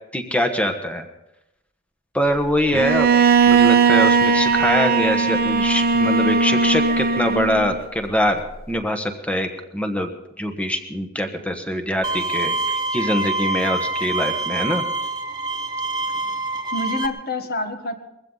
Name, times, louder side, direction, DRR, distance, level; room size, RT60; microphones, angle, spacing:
voice 1, 0.1-1.0 2.1-3.1 3.5-8.4 8.7-9.5 9.7-10.1 10.4-14.8, equal, 5° left, 6 dB, 1.3 m, -23 dB
Bowed string instrument, 2.7-7.7, right 5 dB, 40° right, 1.0 m, -18 dB
Bowed string instrument 2, 12.0-17.1, right 2 dB, 20° right, 0.9 m, -25 dB
voice 2, 16.7-17.9, left 2 dB, 45° left, 7 dB, 1.5 m, -28 dB
21.5 x 15.5 x 4.0 m, 0.88 s
head